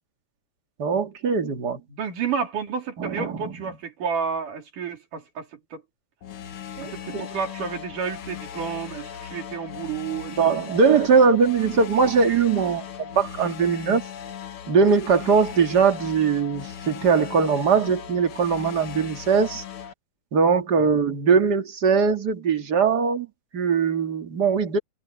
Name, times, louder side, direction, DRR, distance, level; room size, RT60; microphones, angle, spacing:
voice 1, 0.8-1.8 3.0-3.5 6.8-7.3 10.4-14.0 14.7-19.6 20.3-23.3 23.5-24.8, right 5 dB, 35° right, 2.1 m, -21 dB
voice 2, 1.9-5.8 6.8-10.6, right 6 dB, 75° right, 5.0 m, -31 dB
sound 1, 6.2-19.9, left 8 dB, 55° left, 1.7 m, -38 dB
omnidirectional pair, 3.7 m